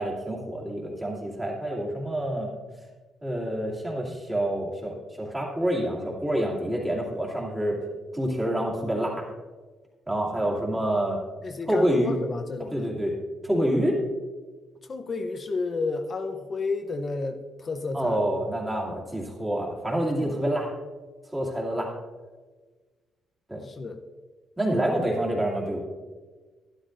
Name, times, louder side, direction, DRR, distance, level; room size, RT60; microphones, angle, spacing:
voice 1, 0.0-2.5 3.2-7.8 8.1-9.2 10.1-11.2 11.7-12.1 12.7-13.1 13.4-14.0 17.9-20.7 21.3-21.9 23.5-23.7 24.6-25.8, right 1 dB, 10° right, -3 dB, 2.3 m, -27 dB
voice 2, 11.4-13.0 14.9-18.2 20.2-20.4 23.6-24.0, left 3 dB, 35° left, 6 dB, 0.7 m, -32 dB
12.0 x 12.0 x 2.6 m, 1.3 s
cardioid pair, 140°, 0 cm